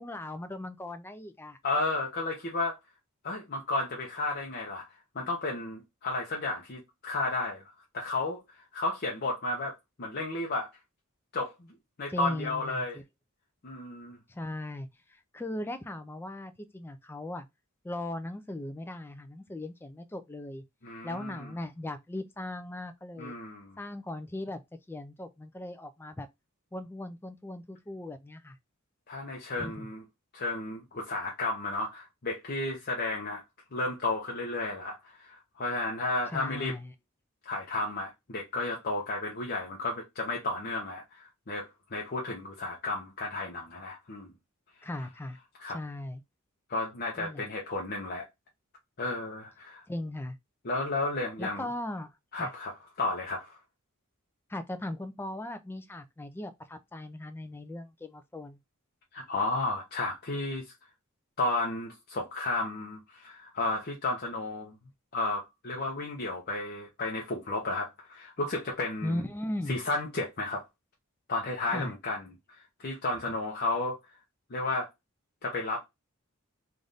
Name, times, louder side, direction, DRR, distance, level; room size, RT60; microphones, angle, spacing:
voice 1, 0.0-1.6 12.1-12.8 14.3-17.5 17.8-20.6 21.0-23.4 23.8-24.6 24.9-26.3 26.7-28.6 29.6-29.9 36.3-36.9 44.8-45.4 45.7-46.2 47.2-47.4 49.9-50.4 51.4-52.5 54.5-58.6 69.0-69.8 71.7-71.9, left 1 dB, 10° left, 0.4 m, -38 dB
voice 2, 1.6-2.8 3.2-4.9 5.1-7.6 7.9-9.7 10.0-10.7 11.3-13.0 13.6-14.2 20.8-21.5 23.2-23.8 29.1-30.0 30.3-33.4 33.7-36.8 37.5-44.3 45.6-45.8 46.7-48.2 49.0-49.8 50.6-51.7 52.3-53.6 59.1-60.6 61.4-64.7 65.1-69.2 69.7-70.6 71.3-72.2 72.5-74.0 74.5-74.9 75.4-75.8, left 2 dB, 45° left, 0.7 m, -33 dB
3.3 x 2.5 x 3.9 m
head